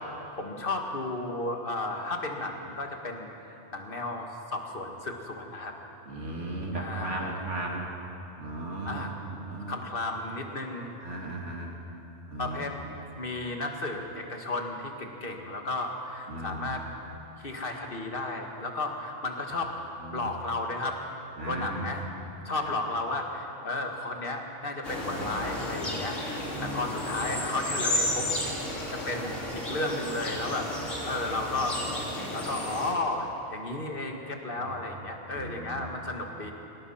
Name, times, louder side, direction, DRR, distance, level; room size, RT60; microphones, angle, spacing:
voice 1, 0.3-5.7 6.7-7.4 8.9-9.1 9.7-11.0 12.4-16.8 17.4-19.7 20.1-21.0 21.4-22.1 22.5-26.2 26.6-28.3 28.9-30.7 31.0-31.8 32.3-36.5, left 2 dB, 50° left, 2 dB, 2.1 m, -33 dB
voice 2, 6.1-7.8 8.4-9.7 11.0-11.7 12.3-12.7 16.3-16.9 20.0-20.3 21.4-21.9 25.1-25.2 26.5-26.8 27.3-27.4 34.6-34.7 35.3-35.9, right 2 dB, 75° right, -1 dB, 2.8 m, -36 dB
sound 1, 24.8-32.9, left 1 dB, 80° left, 4.0 m, -33 dB
26.5 x 18.5 x 5.8 m, 3.0 s
omnidirectional pair, 1.2 m